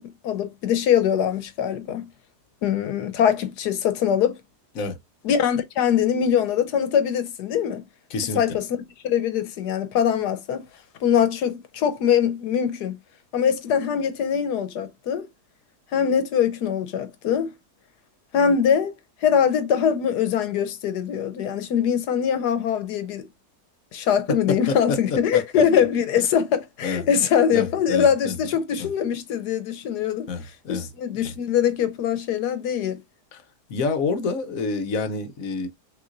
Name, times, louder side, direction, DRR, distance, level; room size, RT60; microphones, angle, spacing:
voice 1, 0.0-2.1 2.6-4.4 5.2-7.8 8.3-8.7 9.0-10.6 11.0-13.0 13.3-15.3 15.9-17.5 18.3-18.9 19.2-23.3 23.9-30.3 30.7-33.0, left 8 dB, 75° left, 1.4 m, -22 dB
voice 2, 8.1-8.4 24.5-25.6 26.8-27.1 27.5-28.4 28.8-28.9 30.3-30.9 31.2-31.3 33.3-33.4 33.7-35.7, left 4 dB, 60° left, 1.1 m, -28 dB
6.1 x 3.0 x 2.5 m
omnidirectional pair, 1.8 m